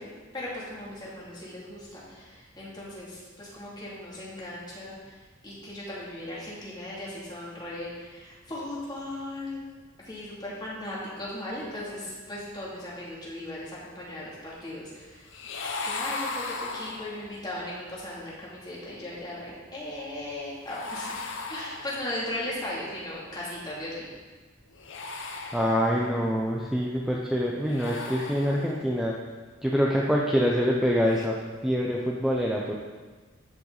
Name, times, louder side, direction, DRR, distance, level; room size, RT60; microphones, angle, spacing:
voice 1, 0.0-9.6 10.0-15.3 15.8-21.2 21.5-24.0, left 1 dB, 20° left, -7 dB, 2.7 m, -37 dB
sound 1, 15.3-17.4 20.7-22.3 24.7-26.3 27.6-29.0 31.0-31.3, left 3 dB, 65° left, 0.9 m, -37 dB
voice 2, 25.5-29.2 29.6-31.4 31.6-32.7, equal, ahead, -3 dB, 0.7 m, -25 dB
13.5 x 5.8 x 4.0 m, 1.4 s
head